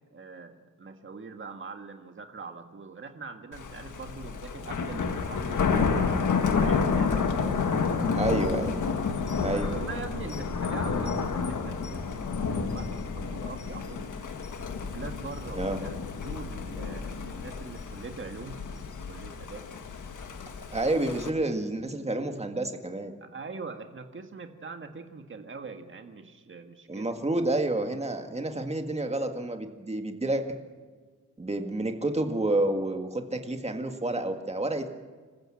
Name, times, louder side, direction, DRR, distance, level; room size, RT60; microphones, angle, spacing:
voice 1, 0.1-8.2 9.5-14.1 14.8-19.6 23.2-27.2, right 4 dB, 40° right, 5 dB, 1.7 m, -43 dB
Thunder, 3.5-21.3, left 5 dB, 80° left, 1.7 m, -30 dB
voice 2, 8.2-8.9 9.4-9.7 15.6-15.8 20.7-23.1 26.9-30.6 31.4-34.9, right 2 dB, 20° right, 5 dB, 1.8 m, -29 dB
26.0 x 15.0 x 7.7 m, 1.5 s
wide cardioid pair, 155°, 30 cm